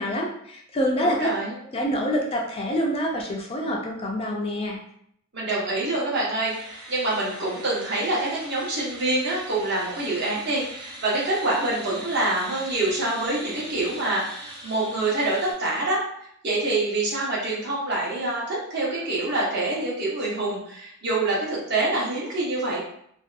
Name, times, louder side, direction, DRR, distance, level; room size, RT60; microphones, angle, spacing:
voice 1, 0.0-1.3 1.7-4.8, equal, 25° left, 0 dB, 0.3 m, -26 dB
voice 2, 1.0-1.5 5.3-16.0 16.4-22.8, right 2 dB, 50° right, -5 dB, 0.8 m, -26 dB
sound 1, 6.4-15.5, right 1 dB, 20° right, 0.7 m, -41 dB
2.6 x 2.2 x 2.4 m, 0.70 s
head